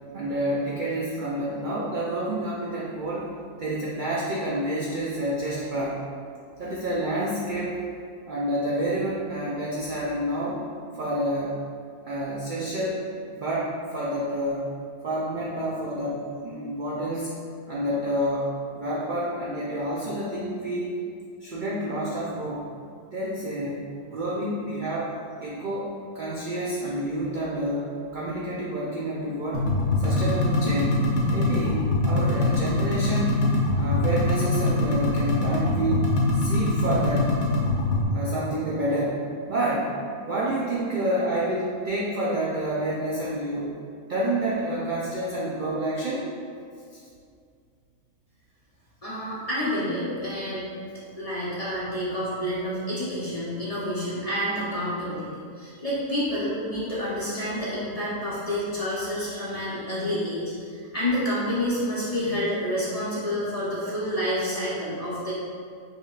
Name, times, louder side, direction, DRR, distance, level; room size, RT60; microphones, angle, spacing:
voice 1, 0.1-3.3 3.6-6.0 6.6-7.8 8.3-10.6 10.9-11.6 12.1-13.0 13.3-14.7 15.0-17.3 17.7-20.9 21.4-22.7 23.1-25.9 26.1-29.7 30.0-31.0 31.3-33.4 33.7-36.1 36.3-37.3 38.1-39.9 40.3-43.8 44.1-46.3 46.9-47.0, right 1 dB, 65° right, -6 dB, 0.5 m, -28 dB
sound 1, 29.5-38.0, left 2 dB, 75° left, 1.2 m, -23 dB
voice 2, 49.0-50.6 51.2-60.7 60.9-65.3, equal, 35° left, -9 dB, 0.7 m, -29 dB
5.6 x 3.0 x 2.4 m, 2.3 s
omnidirectional pair, 1.5 m